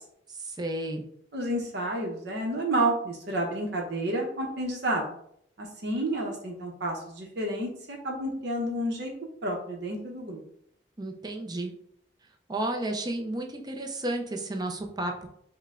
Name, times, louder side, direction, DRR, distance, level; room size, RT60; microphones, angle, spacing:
voice 1, 0.3-1.0 11.0-11.7 12.5-15.3, right 1 dB, 20° right, 2 dB, 0.6 m, -32 dB
voice 2, 1.3-5.1 5.6-9.1 9.4-10.4, right 1 dB, 65° right, 1 dB, 0.9 m, -30 dB
5.3 x 2.2 x 3.7 m, 0.70 s
head